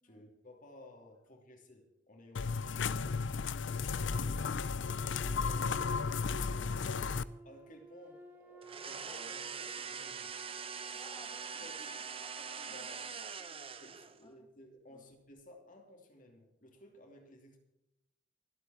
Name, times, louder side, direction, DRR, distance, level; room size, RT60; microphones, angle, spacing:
voice 1, 0.0-3.1 3.7-7.0 7.4-10.4 11.6-11.8 12.7-13.0 13.8-17.6, left 1 dB, 45° left, 3 dB, 2.9 m, -56 dB
sound 1, 2.3-7.2, left 5 dB, 90° left, 0.5 m, -34 dB
Wind instrument woodwind instrument, 4.8-9.7, equal, 10° right, 2.6 m, -55 dB
sound 2, 8.6-14.2, right 6 dB, 30° right, 0.9 m, -43 dB
voice 2, 10.9-13.1 13.3-13.8 14.2-14.5 14.9-15.1, left 2 dB, 25° left, 3 dB, 2.9 m, -59 dB
24.5 x 8.3 x 4.4 m, 0.90 s
head